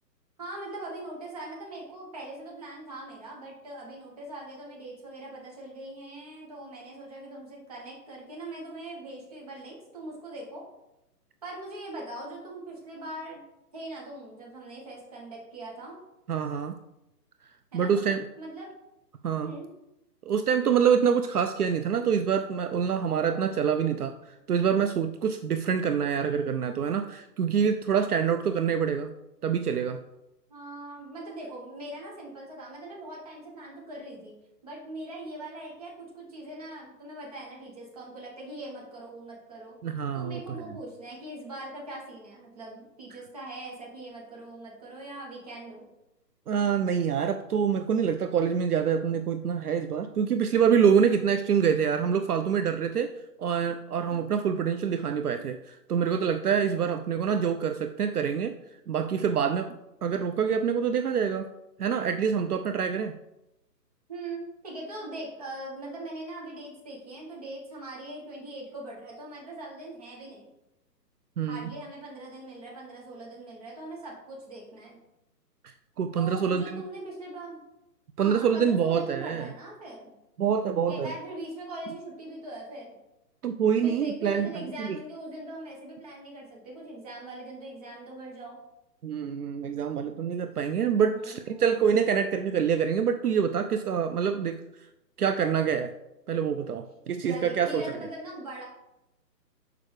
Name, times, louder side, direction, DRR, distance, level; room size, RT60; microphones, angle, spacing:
voice 1, 0.4-10.6 11.4-13.4 13.7-16.0 17.7-18.1 18.4-18.7 19.4-19.7 30.5-34.3 34.6-39.7 40.1-45.9 54.1-54.2 64.1-70.5 71.5-75.0 76.2-77.6 78.2-80.1 80.9-82.9 83.8-88.6 91.1-91.9 97.2-98.6, right 1 dB, 25° right, -3 dB, 1.5 m, -41 dB
voice 2, 16.3-16.7 17.7-18.2 19.2-19.5 20.3-29.1 29.4-30.0 39.8-40.4 43.1-43.2 46.5-53.1 53.4-58.5 58.9-59.7 60.0-61.5 61.8-63.1 71.4-71.7 75.6-76.8 78.2-79.5 80.4-81.1 83.4-85.0 89.0-94.6 95.2-95.9 96.3-97.8, right 7 dB, 65° right, 8 dB, 0.6 m, -26 dB
6.7 x 4.8 x 4.9 m, 0.90 s
hypercardioid pair, 180°, 49 cm